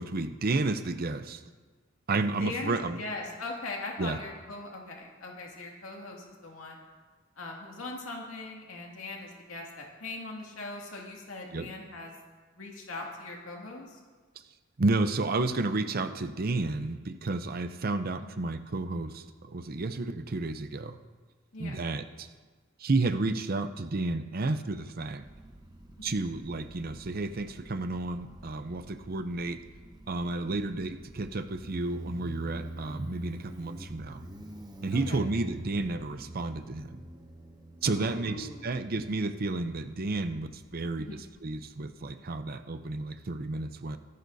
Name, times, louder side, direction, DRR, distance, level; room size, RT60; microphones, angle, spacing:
voice 1, 0.0-1.4 2.1-3.0 4.0-4.2 11.5-11.7 14.8-21.0 21.6-22.3 22.8-25.2 26.0-29.6 30.1-34.2 34.8-37.1 37.8-44.0, right 3 dB, 45° right, 10 dB, 0.6 m, -31 dB
voice 2, 2.4-6.8 7.4-12.1 12.6-14.0 18.2-18.3 21.5-21.8 26.0-26.1 34.9-35.2 37.8-38.7 41.0-41.2, left 2 dB, 85° left, -1 dB, 2.3 m, -40 dB
Motorcycle, 25.2-42.4, right 1 dB, 20° right, 1.0 m, -46 dB
24.0 x 11.0 x 2.7 m, 1.4 s
head